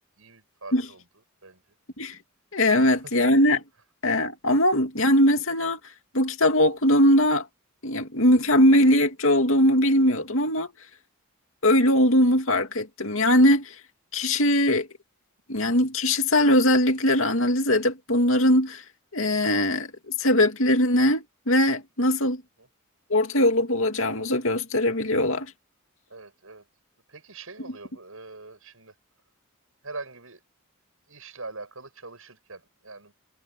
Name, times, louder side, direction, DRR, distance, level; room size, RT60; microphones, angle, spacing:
voice 1, 0.2-1.1 1.4-1.6 2.7-3.1 22.6-22.7 26.1-26.7 27.1-28.9 29.8-30.4 31.1-33.1, right 3 dB, 70° right, 7.0 m, -43 dB
voice 2, 2.5-3.6 4.0-5.8 6.1-7.5 7.8-10.7 11.6-13.7 14.1-14.9 15.5-18.8 19.1-19.9 20.2-22.4 23.1-25.5, left 1 dB, 65° left, 2.6 m, -21 dB
head